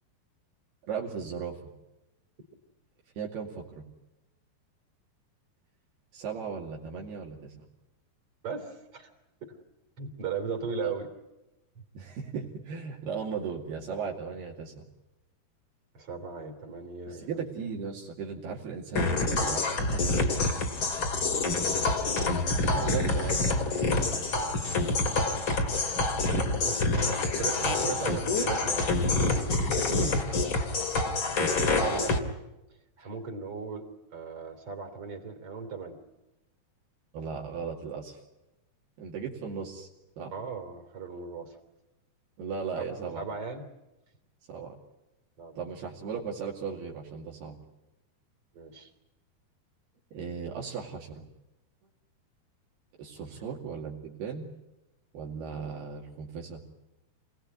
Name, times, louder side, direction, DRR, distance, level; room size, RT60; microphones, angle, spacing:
voice 1, 0.9-1.6 3.2-3.8 6.1-7.5 10.8-10.9 11.9-14.8 17.1-20.4 22.7-24.1 26.9-27.3 27.6-27.9 29.7-30.3 31.4-32.0 33.0-33.1 37.1-38.2 39.0-39.9 40.2-40.3 42.4-43.2 44.5-44.8 45.6-47.6 50.1-51.2 53.0-54.5 55.1-56.6, right 6 dB, 70° right, -1 dB, 4.4 m, -37 dB
voice 2, 8.4-9.1 9.4-9.5 10.0-11.1 15.9-17.3 21.5-21.6 26.7-28.9 31.4-32.4 33.0-36.0 40.3-41.6 42.7-42.8 43.1-43.7 45.4-45.8 48.5-48.9 53.3-53.5, right 5 dB, 35° right, 6 dB, 3.9 m, -37 dB
sound 1, 19.0-32.2, left 3 dB, 35° left, 2.6 m, -27 dB
28.0 x 18.5 x 9.5 m, 0.99 s
omnidirectional pair, 4.8 m